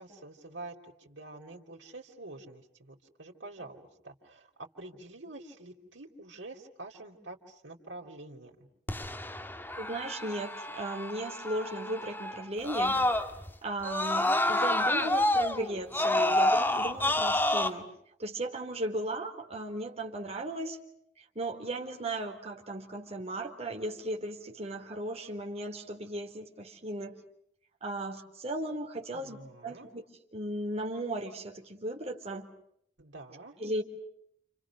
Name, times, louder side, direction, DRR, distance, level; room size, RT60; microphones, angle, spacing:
voice 1, 0.0-4.5 4.8-8.7 29.1-29.9 33.0-33.6, right 2 dB, 85° right, -2 dB, 3.8 m, -47 dB
Screaming, 8.9-13.5 13.8-17.7, left 1 dB, 10° left, 2.1 m, -28 dB
voice 2, 9.8-13.0 13.6-17.9 18.2-20.8 21.2-27.2 27.8-29.4 29.6-30.0 30.3-32.5 33.6-33.8, right 1 dB, 35° right, 2 dB, 4.0 m, -36 dB
30.0 x 29.5 x 6.4 m, 0.71 s
head